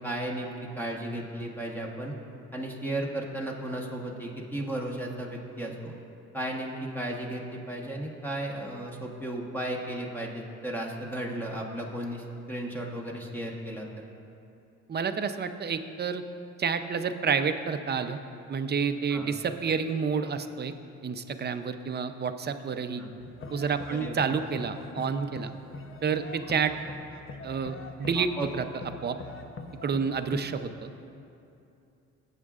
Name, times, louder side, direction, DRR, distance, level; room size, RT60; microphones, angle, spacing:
voice 1, 0.0-2.1 2.5-5.9 6.3-13.9 19.1-19.3 22.9-23.1 23.9-24.4 28.1-28.5, right 1 dB, 5° left, -2 dB, 1.1 m, -35 dB
voice 2, 14.9-16.2 16.6-18.2 18.5-20.7 21.0-23.0 23.5-25.5 26.0-26.7 27.4-28.7 29.0-29.2 29.8-30.9, right 6 dB, 35° right, 9 dB, 0.6 m, -29 dB
sound 1, 23.2-30.4, left 3 dB, 45° left, 0.7 m, -42 dB
17.5 x 8.2 x 2.4 m, 2.7 s
cardioid pair, 90°, 30 cm